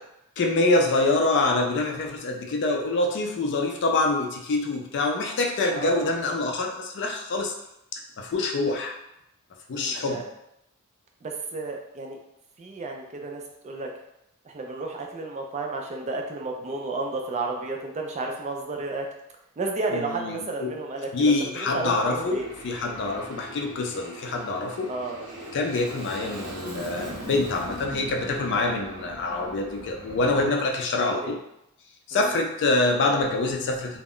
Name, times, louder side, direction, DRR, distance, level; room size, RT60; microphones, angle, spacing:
voice 1, 0.4-7.5 7.9-9.0 9.7-10.2 19.9-20.8 21.1-24.9 25.5-31.4 32.1-34.0, left 2 dB, 55° left, 2 dB, 0.4 m, -25 dB
voice 2, 5.7-6.1 9.7-10.3 11.2-12.2 12.6-13.9 14.4-19.1 19.6-22.5 24.9-25.2 31.2-31.3 32.1-32.4, right 3 dB, 30° right, 1 dB, 0.3 m, -32 dB
Aircraft, 21.6-30.5, equal, 80° right, 0.8 m, -40 dB
2.1 x 2.0 x 3.6 m, 0.83 s
head